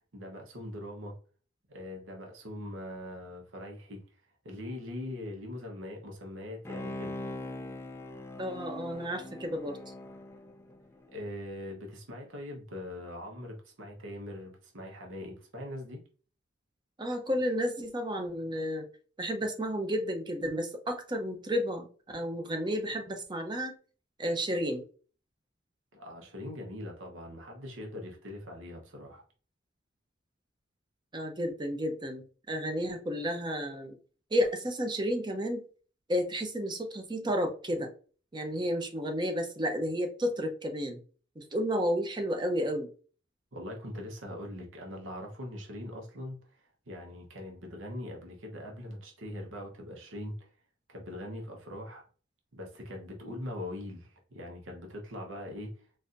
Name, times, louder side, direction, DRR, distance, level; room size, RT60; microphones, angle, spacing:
voice 1, 0.1-1.2 1.7-4.0 4.4-7.2 11.1-16.0 25.9-29.2 43.5-50.5 50.9-52.0 52.5-55.8, left 1 dB, 85° right, 0.9 m, -42 dB
Bowed string instrument, 6.6-11.3 11.7-11.8, left 1 dB, 15° left, 0.3 m, -42 dB
voice 2, 8.4-9.8 17.0-18.9 19.2-23.7 24.2-24.8 31.1-34.0 34.3-35.6 36.1-37.9 38.3-41.0 41.4-42.9, equal, 25° right, 0.6 m, -32 dB
4.1 x 2.5 x 2.5 m
head